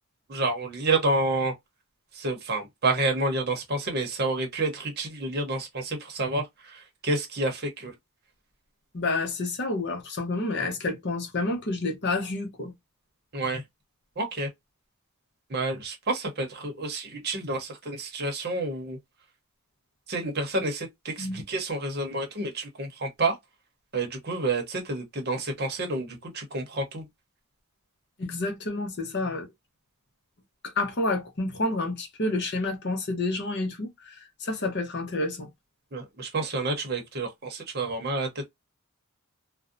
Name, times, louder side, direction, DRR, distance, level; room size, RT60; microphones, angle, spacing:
voice 1, 0.3-1.5 2.1-7.9 13.3-13.6 14.2-14.5 15.5-19.0 20.1-23.4 23.9-27.0 35.9-38.4, right 2 dB, 45° right, 0.8 m, -29 dB
voice 2, 8.9-12.7 21.2-21.4 28.2-29.5 30.6-35.5, left 2 dB, 50° left, 0.8 m, -29 dB
2.5 x 2.1 x 2.4 m
head